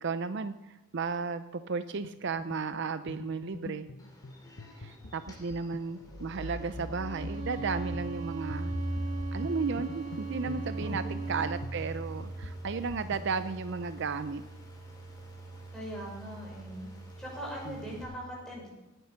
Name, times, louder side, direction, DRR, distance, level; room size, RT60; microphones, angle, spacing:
voice 1, 0.0-3.9 4.8-8.7 9.3-14.4 17.7-17.8, right 4 dB, 55° right, 12 dB, 0.5 m, -34 dB
sound 1, 2.0-13.3, left 2 dB, 65° left, 0.9 m, -47 dB
sound 2, 4.0-18.0, right 1 dB, 20° left, 3.1 m, -41 dB
Bowed string instrument, 6.9-11.7, right 6 dB, 35° right, 1.7 m, -40 dB
voice 2, 10.7-11.3 15.7-16.8 17.2-18.7, equal, 5° left, -4 dB, 6.3 m, -41 dB
18.0 x 10.0 x 5.9 m, 1.0 s
head